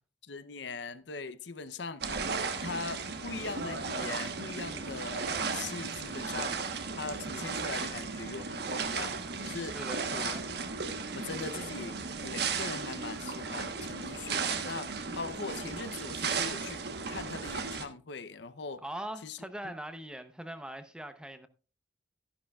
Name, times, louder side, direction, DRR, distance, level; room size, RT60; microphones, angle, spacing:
voice 1, 0.2-2.3 2.6-6.6 6.9-9.8 10.1-10.4 11.1-18.8 19.2-19.4, left 4 dB, 65° left, 0.7 m, -41 dB
sound 1, 2.0-17.9, right 4 dB, 60° right, 1.2 m, -35 dB
voice 2, 9.6-10.4 18.8-21.5, right 1 dB, 5° right, 0.7 m, -41 dB
12.5 x 11.0 x 2.3 m
head